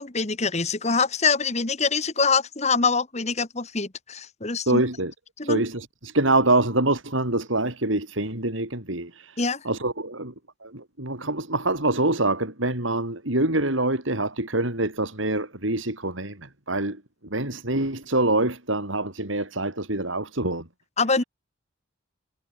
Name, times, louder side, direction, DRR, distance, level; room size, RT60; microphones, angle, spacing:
voice 1, 0.0-4.8 5.4-5.6 9.4-9.6 21.0-21.2, left 4 dB, 35° left, 1.7 m, -24 dB
voice 2, 4.7-5.1 5.4-10.3 10.6-20.7, right 2 dB, 75° right, 5.3 m, -25 dB
head